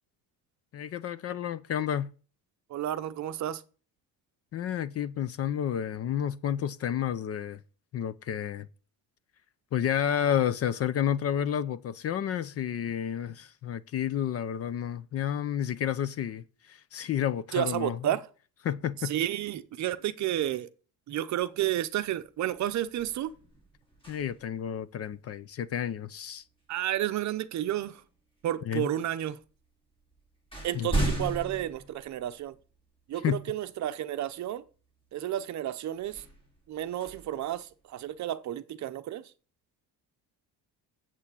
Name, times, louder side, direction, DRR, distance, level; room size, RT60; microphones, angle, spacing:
voice 1, 0.7-2.1 4.5-7.6 7.9-8.7 9.7-18.0 18.6-19.1 24.1-26.4 28.7-28.9 30.7-30.9 33.2-33.4, left 9 dB, 40° left, 0.5 m, -30 dB
voice 2, 2.7-3.6 17.5-18.2 19.0-20.7 21.1-23.3 26.7-28.0 28.4-29.4 30.6-32.5 33.1-34.6 35.1-36.2 36.7-39.2, right 12 dB, 45° right, 0.8 m, -31 dB
sound 1, 21.9-22.2 22.6-24.6 26.8-27.0 27.8-28.5 29.4-29.5 29.9-32.8 33.3-33.4 36.0-38.2, right 2 dB, 15° left, 3.2 m, -36 dB
8.4 x 7.6 x 8.3 m
cardioid pair, 180°, 39 cm